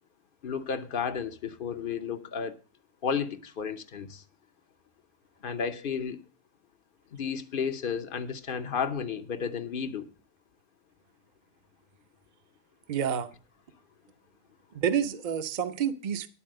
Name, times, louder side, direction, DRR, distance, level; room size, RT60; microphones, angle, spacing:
voice 1, 0.4-2.6 3.0-4.2 5.4-6.2 7.1-10.1, left 6 dB, 55° left, 1.0 m, -32 dB
voice 2, 12.9-13.3 14.7-16.3, right 8 dB, 50° right, 0.8 m, -28 dB
11.0 x 4.5 x 7.5 m
omnidirectional pair, 1.1 m